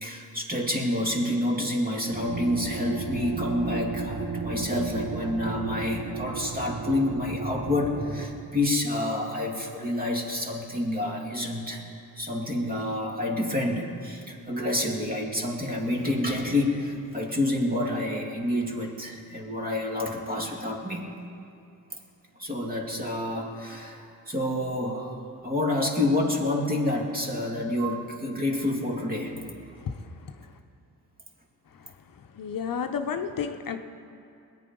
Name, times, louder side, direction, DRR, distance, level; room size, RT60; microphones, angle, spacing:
voice 1, 0.0-11.9 12.2-21.1 22.4-29.6, left 1 dB, 25° right, -1 dB, 2.5 m, -28 dB
sound 1, 2.1-8.3, right 4 dB, 60° right, 1.4 m, -33 dB
voice 2, 32.3-33.8, left 7 dB, 60° left, 6 dB, 0.9 m, -31 dB
21.0 x 9.2 x 5.4 m, 2.6 s
cardioid pair, 90°, 37 cm